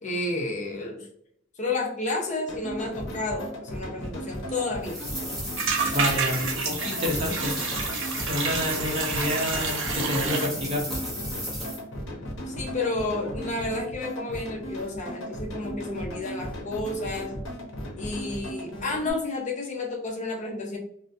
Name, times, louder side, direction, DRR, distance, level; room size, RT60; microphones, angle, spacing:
voice 1, 0.0-1.1 1.6-5.0 12.5-17.3 18.0-20.8, left 2 dB, 40° left, 0 dB, 0.5 m, -31 dB
sound 1, 2.5-19.1, equal, 80° left, 0.7 m, -36 dB
sound 2, 4.2-4.3 4.5-4.6 4.8-5.1 5.6-10.5, right 5 dB, 80° right, 0.5 m, -30 dB
sound 3, 4.8-11.8, equal, ahead, 0.8 m, -34 dB
voice 2, 5.9-7.5 8.3-10.8, left 1 dB, 30° right, -2 dB, 0.7 m, -28 dB
2.4 x 2.1 x 2.5 m, 0.70 s
head